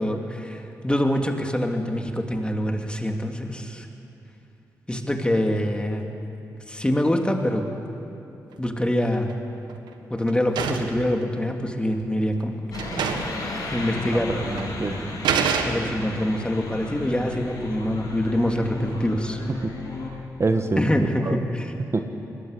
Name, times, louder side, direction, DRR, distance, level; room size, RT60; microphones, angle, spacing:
voice 1, 0.0-3.9 4.9-6.1 6.7-7.7 8.6-9.3 10.1-12.7 13.7-14.4 15.6-19.4 20.8-21.7, left 1 dB, 15° left, 3 dB, 2.9 m, -25 dB
sound 1, 8.8-9.3 9.7-11.0 12.0-12.1 12.4-12.5 12.7-13.4 13.7-13.8 14.6-14.7 15.2-16.2, right 6 dB, 85° right, 1.5 m, -27 dB
sound 2, 12.7-20.1, left 2 dB, 60° left, 7.2 m, -34 dB
voice 2, 14.3-14.9 19.6-19.7 20.4-21.4 21.9-22.1, right 3 dB, 40° right, 6 dB, 1.4 m, -25 dB
21.5 x 19.0 x 8.4 m, 2.8 s
supercardioid pair, 45°, 7 cm